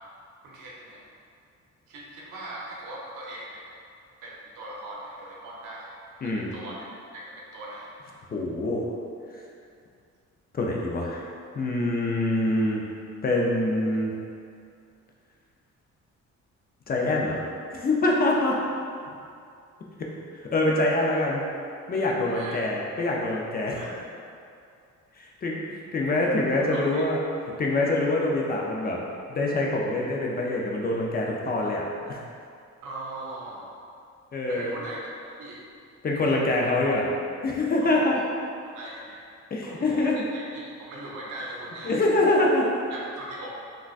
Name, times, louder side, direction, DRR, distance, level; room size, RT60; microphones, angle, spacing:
voice 1, 0.4-1.0 1.9-3.6 4.2-5.9 6.2-7.9 22.2-22.6 23.8-23.9 26.7-27.0 32.8-33.7 34.5-35.1 35.4-35.6 37.8-38.3 38.6-39.2 39.6-42.0 42.9-43.6, right 1 dB, 90° right, -4 dB, 0.7 m, -40 dB
voice 2, 6.2-6.5 8.3-8.8 10.5-11.2 11.5-12.8 13.2-14.1 16.9-17.4 17.7-18.6 20.3-21.4 21.9-23.8 25.2-27.2 27.6-29.0 29.3-32.2 34.3-34.7 36.0-37.1 37.4-38.2 39.5-40.1 41.8-42.7, left 2 dB, 30° left, -2 dB, 0.5 m, -25 dB
3.7 x 2.3 x 2.4 m, 2.4 s
cardioid pair, 90°, 30 cm